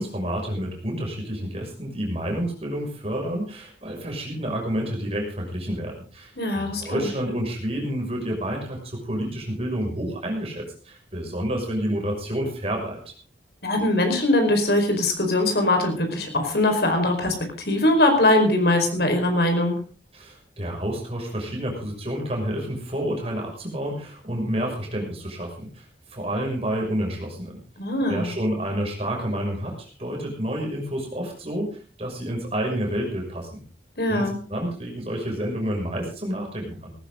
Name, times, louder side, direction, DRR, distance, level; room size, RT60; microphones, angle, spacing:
voice 1, 0.0-13.1 20.1-25.8 26.1-27.6 28.1-33.6 34.1-36.9, equal, 35° right, 0 dB, 6.1 m, -29 dB
voice 2, 6.4-7.1 13.6-19.8 27.8-28.3 34.0-34.3, left 1 dB, 65° left, 5 dB, 4.8 m, -21 dB
18.0 x 15.0 x 3.8 m, 0.38 s
head